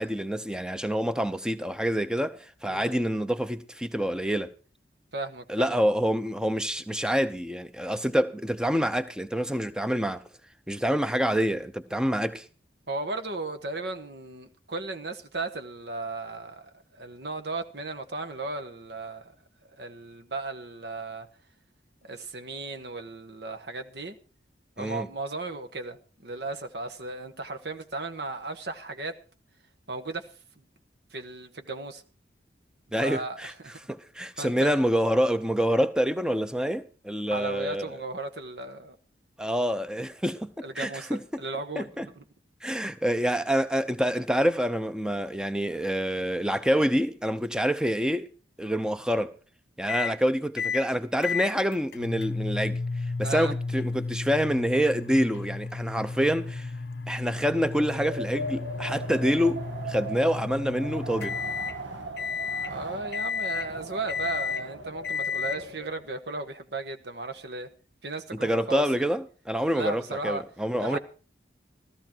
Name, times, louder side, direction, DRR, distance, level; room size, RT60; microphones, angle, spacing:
voice 1, 0.0-4.5 5.5-10.2 10.7-12.5 24.8-25.1 32.9-33.5 33.9-37.9 39.4-40.5 40.8-41.2 41.8-42.1 42.6-48.3 48.6-49.3 49.8-52.8 53.2-56.7 57.1-61.3 68.3-71.0, equal, 5° right, 0.7 m, -27 dB
voice 2, 2.7-3.1 5.1-5.8 12.9-19.3 19.8-21.3 22.0-24.2 24.8-29.1 29.9-30.3 31.1-32.0 33.0-33.8 34.4-34.8 37.3-39.0 40.6-41.9 42.1-42.2 53.2-53.5 62.6-67.7 68.0-69.1 69.7-70.4 70.8-71.0, right 3 dB, 65° right, 1.2 m, -35 dB
sound 1, 49.9-50.2 50.6-50.9 51.2-61.8 62.2-62.7 63.1-63.7 64.1-64.6 65.0-65.6, left 5 dB, 60° left, 0.7 m, -33 dB
Wind, 57.6-66.1, right 2 dB, 90° right, 1.6 m, -39 dB
16.0 x 13.5 x 4.5 m
head